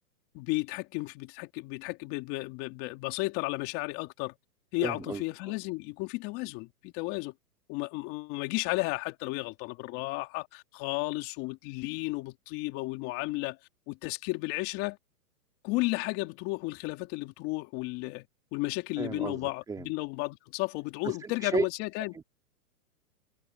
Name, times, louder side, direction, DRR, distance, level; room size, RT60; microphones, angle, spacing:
voice 1, 0.3-4.3 4.7-7.3 7.7-13.6 13.9-15.0 15.6-18.3 18.5-22.1, left 23 dB, 30° left, 3.2 m, -33 dB
voice 2, 4.8-5.5 19.0-19.9 21.0-21.6 22.1-22.3, right 5 dB, 10° right, 2.5 m, -34 dB
hypercardioid pair, 155°, 46 cm